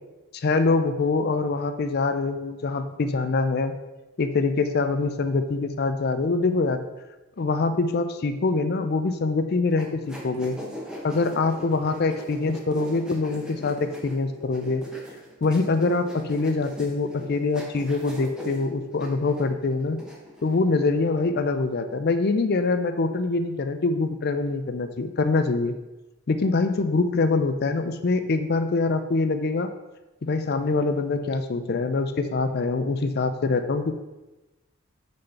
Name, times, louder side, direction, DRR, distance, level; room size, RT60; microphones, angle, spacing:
voice 1, 0.3-3.7 4.2-6.8 7.4-10.6 11.0-14.8 15.4-20.0 20.4-25.8 26.3-29.7 30.2-33.9, left 3 dB, 45° left, 9 dB, 0.4 m, -24 dB
sound 1, 9.8-20.6, left 1 dB, 5° right, 1.1 m, -41 dB
6.3 x 4.2 x 5.8 m, 1.1 s
head